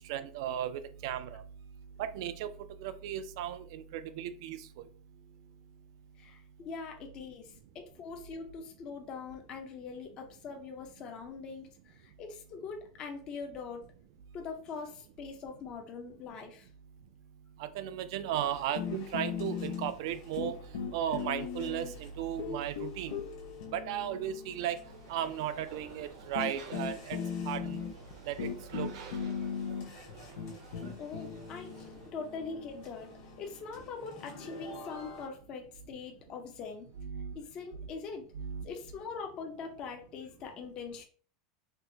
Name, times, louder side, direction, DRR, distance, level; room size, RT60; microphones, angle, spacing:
voice 1, 0.1-1.4 2.0-2.5 2.8-4.6 17.6-20.5 20.9-23.1 23.7-24.8 25.1-27.2 27.5-27.8 28.3-28.9 37.0-37.3 38.4-38.7, right 10 dB, 55° right, 11 dB, 0.3 m, -35 dB
voice 2, 6.2-13.9 14.3-16.7 31.0-33.1 33.4-36.9 37.3-38.2 38.6-41.0, left 5 dB, 25° left, 3 dB, 0.5 m, -42 dB
sound 1, 18.4-35.3, left 3 dB, 50° left, 1.3 m, -53 dB
sound 2, 18.7-20.1 20.4-22.0 22.4-24.8 25.8-25.9 26.3-33.9, left 7 dB, 85° left, 0.6 m, -38 dB
sound 3, 24.8-32.1, right 5 dB, 85° right, 0.9 m, -52 dB
4.4 x 2.1 x 2.6 m, 0.42 s
supercardioid pair, 175°, 3 cm